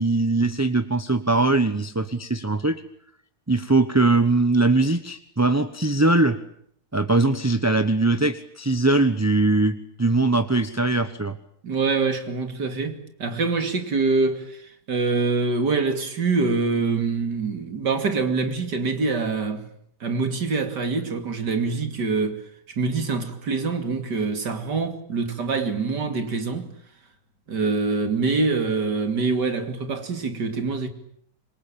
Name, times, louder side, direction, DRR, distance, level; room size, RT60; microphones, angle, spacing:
voice 1, 0.0-2.8 3.5-6.4 6.9-11.4, right 2 dB, 15° right, 0.7 m, -21 dB
voice 2, 11.6-19.6 20.0-22.4 22.7-26.7 27.5-30.9, right 4 dB, 70° right, 3.2 m, -25 dB
27.0 x 23.0 x 8.9 m
omnidirectional pair, 1.9 m